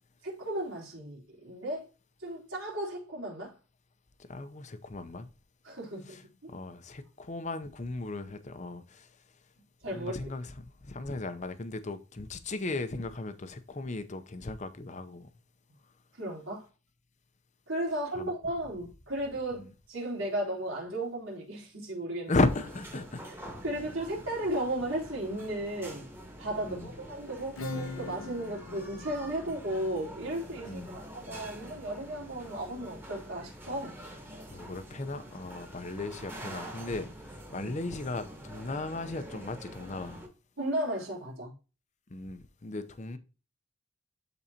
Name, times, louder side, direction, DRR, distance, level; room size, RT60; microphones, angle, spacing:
voice 1, 0.2-1.9 2.2-3.5 5.6-6.5 9.8-10.1 16.2-16.6 17.7-22.4 23.6-26.1 26.4-34.0 37.5-37.7 40.6-41.5, right 1 dB, 80° right, 3.7 m, -35 dB
voice 2, 4.2-5.3 6.1-6.2 6.5-9.1 9.9-15.3 18.1-18.3 19.5-19.7 22.3-23.6 26.7-26.9 30.7-30.9 34.5-40.2 42.1-43.2, left 2 dB, 35° left, 0.7 m, -36 dB
sound 1, 22.3-40.3, right 1 dB, 10° right, 1.5 m, -46 dB
Acoustic guitar / Strum, 27.6-32.9, left 4 dB, 90° left, 0.8 m, -44 dB
12.0 x 4.1 x 2.8 m
head